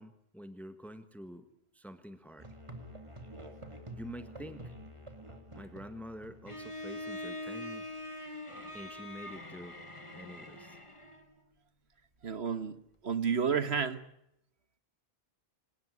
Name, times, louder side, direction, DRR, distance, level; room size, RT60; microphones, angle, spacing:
voice 1, 0.0-1.5 1.7-2.5 3.9-4.7 5.5-7.8 8.7-9.8 10.1-10.8, equal, ahead, 11 dB, 1.5 m, -47 dB
Musical instrument, 2.4-7.2, equal, 30° right, 2.8 m, -48 dB
Bowed string instrument, 6.5-11.3, left 1 dB, 30° left, 2.4 m, -43 dB
voice 2, 12.2-12.8 13.0-14.0, right 6 dB, 85° right, 13 dB, 1.7 m, -30 dB
26.0 x 19.0 x 9.7 m, 0.76 s
omnidirectional pair, 1.0 m